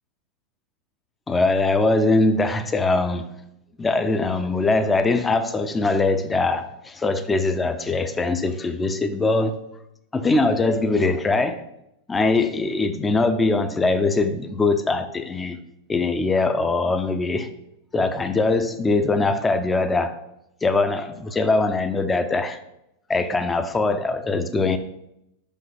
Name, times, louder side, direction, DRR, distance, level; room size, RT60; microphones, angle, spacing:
voice 1, 1.3-3.3 3.8-9.6 10.1-11.6 12.1-15.6 15.9-17.5 17.9-20.1 20.6-22.6 23.1-24.8, left 3 dB, 15° left, 0.5 m, -22 dB
5.7 x 5.3 x 5.4 m
figure-of-eight pair, 90°, 0 cm